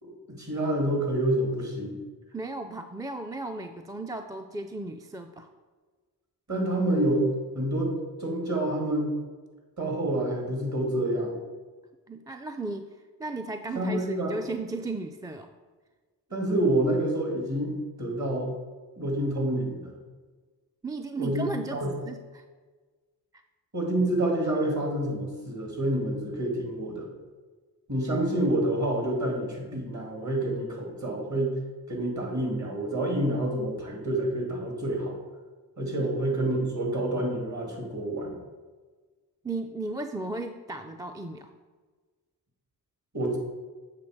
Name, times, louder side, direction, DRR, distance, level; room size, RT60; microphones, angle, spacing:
voice 1, 0.0-2.0 6.5-7.3 7.5-9.1 9.8-11.3 13.7-14.4 16.3-18.5 19.0-19.9 21.2-21.4 21.7-21.9 23.7-27.1 27.9-31.5 31.9-35.2 35.8-38.4 43.1-43.4, right 1 dB, 40° right, 0 dB, 2.3 m, -28 dB
voice 2, 2.3-5.5 12.1-12.9 13.2-15.5 20.8-22.4 36.0-36.1 39.4-41.5, right 2 dB, 10° right, 6 dB, 0.4 m, -35 dB
7.5 x 3.5 x 6.4 m, 1.4 s
cardioid pair, 45°, 43 cm